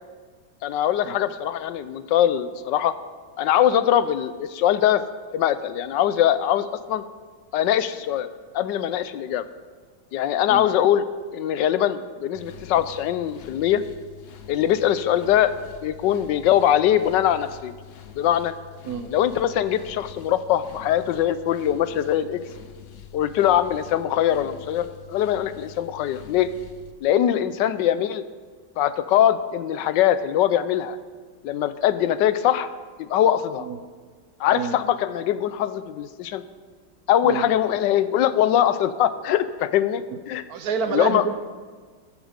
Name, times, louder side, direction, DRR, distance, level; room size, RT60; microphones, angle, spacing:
voice 1, 0.6-2.9 3.4-5.0 5.3-7.0 7.5-8.3 8.5-9.4 10.1-11.0 11.3-13.8 14.5-15.5 15.8-17.7 18.1-18.5 19.1-22.4 23.1-26.5 27.0-28.2 28.8-31.0 31.4-32.7 33.0-33.7 34.4-36.4 37.1-40.5 40.9-41.2, left 11 dB, 80° left, 13 dB, 1.3 m, -22 dB
sound 1, 12.3-26.9, left 10 dB, 60° left, 0.9 m, -45 dB
voice 2, 40.5-41.3, right 6 dB, 65° right, 9 dB, 1.1 m, -28 dB
14.5 x 9.0 x 5.0 m, 1.5 s
omnidirectional pair, 1.9 m